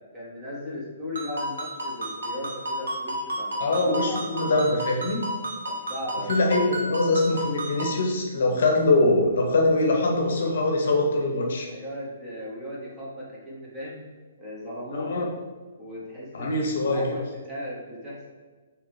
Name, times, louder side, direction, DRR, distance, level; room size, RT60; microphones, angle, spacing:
voice 1, 0.1-4.5 5.6-6.3 11.7-14.0 14.4-15.2 15.8-18.2, left 1 dB, 10° right, -8 dB, 1.3 m, -37 dB
Ringtone, 1.2-8.0, equal, 75° right, 1.0 m, -32 dB
voice 2, 3.6-5.2 6.3-11.7 14.9-15.3 16.3-17.0, left 2 dB, 65° left, 0 dB, 0.8 m, -23 dB
3.8 x 2.9 x 3.1 m, 1.4 s
hypercardioid pair, 135°, 0 cm